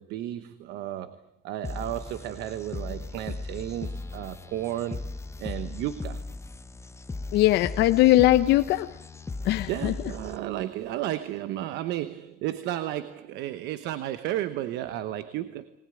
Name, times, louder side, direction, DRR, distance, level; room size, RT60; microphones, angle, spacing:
voice 1, 0.0-5.1 5.4-6.2 9.7-15.7, right 13 dB, 90° right, 13 dB, 1.1 m, -33 dB
sound 1, 1.6-10.6, left 3 dB, 15° left, 0.9 m, -38 dB
voice 2, 7.3-8.9 9.4-9.9, left 15 dB, 85° left, 7 dB, 0.9 m, -20 dB
23.0 x 20.0 x 9.1 m, 0.79 s
cardioid pair, 110°, 17 cm